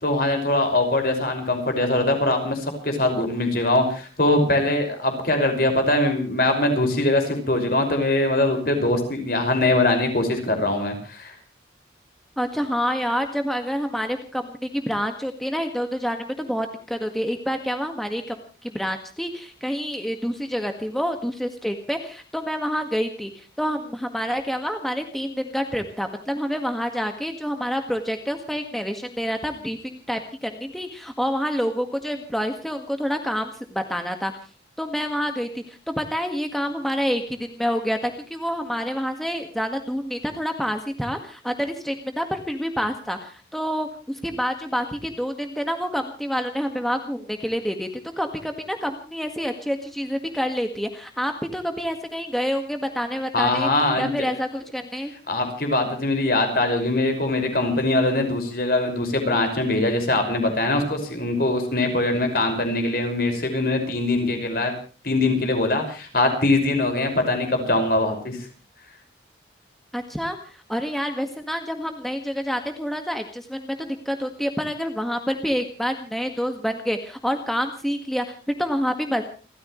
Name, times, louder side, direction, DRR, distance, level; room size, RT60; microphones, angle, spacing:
voice 1, 0.0-11.3 53.3-54.3 55.3-64.7 65.0-68.4, left 2 dB, 55° left, 5 dB, 5.8 m, -22 dB
voice 2, 12.4-34.3 34.8-47.9 48.2-53.7 54.0-55.1 69.9-79.2, equal, ahead, 5 dB, 1.7 m, -28 dB
30.0 x 14.5 x 3.2 m, 0.38 s
head